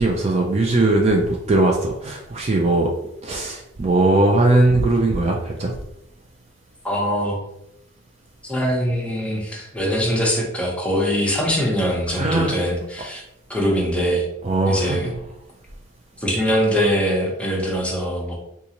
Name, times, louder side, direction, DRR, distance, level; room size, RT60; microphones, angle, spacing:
voice 1, 0.0-2.9 3.2-5.7 12.1-12.6 14.4-15.0, right 2 dB, 30° right, 0 dB, 0.4 m, -19 dB
voice 2, 6.8-7.4 8.4-13.2 13.5-14.2 14.7-15.1 16.2-18.3, equal, 5° left, -2 dB, 0.7 m, -22 dB
3.9 x 2.4 x 2.9 m, 0.80 s
head